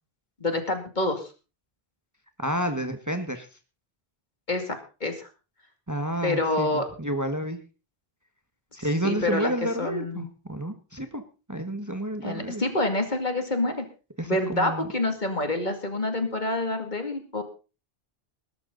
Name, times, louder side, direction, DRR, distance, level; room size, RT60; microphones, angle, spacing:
voice 1, 0.4-1.3 4.5-5.3 6.2-6.9 9.0-9.5 9.8-10.3 12.2-13.9 14.3-17.4, left 2 dB, 45° left, 6 dB, 2.7 m, -27 dB
voice 2, 2.4-3.5 5.9-7.6 8.8-11.2 11.5-12.6 14.2-14.9, right 1 dB, 15° right, 7 dB, 1.5 m, -30 dB
20.0 x 11.5 x 4.0 m, 0.33 s
omnidirectional pair, 1.1 m